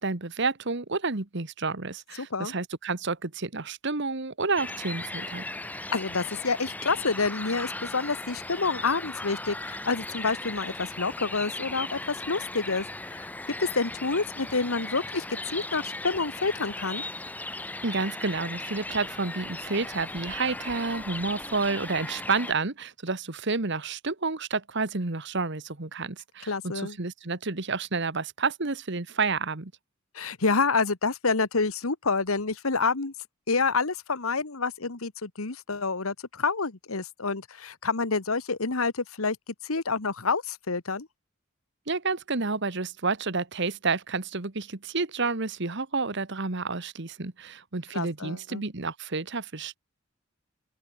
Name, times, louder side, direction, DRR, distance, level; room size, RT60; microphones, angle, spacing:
voice 1, 0.0-5.5 17.8-29.7 41.9-49.8, right 4 dB, 55° right, 1.5 m, -30 dB
voice 2, 2.2-2.5 5.9-12.8 13.1-13.2 13.6-15.2 15.5-17.0 26.5-27.0 30.1-33.1 33.5-39.4 39.6-41.1 47.9-48.6, left 4 dB, 85° left, 1.5 m, -28 dB
sound 1, 4.6-22.5, left 2 dB, 10° left, 0.7 m, -37 dB
open air
head